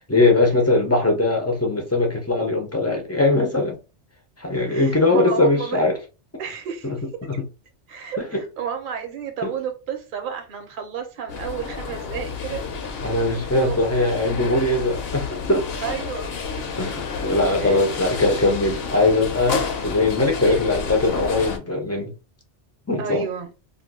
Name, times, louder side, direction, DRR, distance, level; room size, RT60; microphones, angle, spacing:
voice 1, 0.1-3.8 4.4-6.0 6.8-7.0 7.4-7.5 8.3-8.4 9.4-9.5 13.0-15.7 16.8-22.1 22.9-23.3, left 2 dB, 20° left, 0.4 m, -21 dB
voice 2, 4.7-5.8 6.4-6.9 7.9-12.7 13.1-13.2 13.6-13.8 15.8-16.6 17.6-17.8 20.5-20.6 23.0-23.5, right 7 dB, 50° right, 0.8 m, -31 dB
sound 1, 11.3-21.6, left 5 dB, 60° left, 0.8 m, -30 dB
2.5 x 2.3 x 3.5 m
omnidirectional pair, 1.2 m